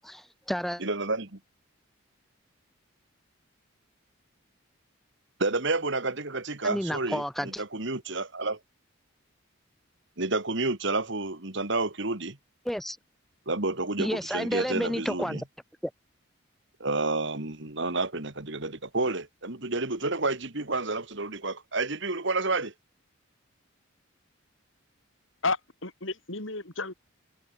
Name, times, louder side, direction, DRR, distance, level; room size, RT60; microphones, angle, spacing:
voice 1, 0.0-0.8 6.6-7.6 12.6-13.0 14.0-15.4 15.8-15.9, equal, ahead, 1.3 m, -31 dB
voice 2, 0.8-1.4 5.4-8.6 10.2-12.4 13.5-15.4 16.8-22.7, right 3 dB, 55° right, 2.2 m, -30 dB
voice 3, 25.4-26.9, left 3 dB, 65° left, 3.9 m, -32 dB
head